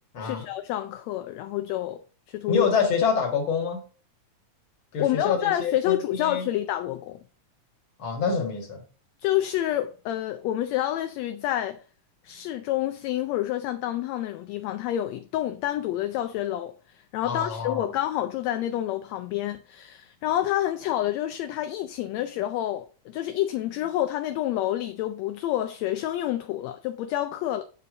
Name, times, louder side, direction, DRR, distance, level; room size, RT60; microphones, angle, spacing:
voice 1, 0.2-2.0 2.3-2.7 5.0-7.2 9.2-11.8 12.2-16.7 17.1-27.6, left 13 dB, 80° left, 1.7 m, -28 dB
voice 2, 2.5-3.8 4.9-6.5 8.0-8.8 17.2-17.9, left 5 dB, 45° left, 2.4 m, -26 dB
7.4 x 5.3 x 3.8 m
omnidirectional pair, 3.4 m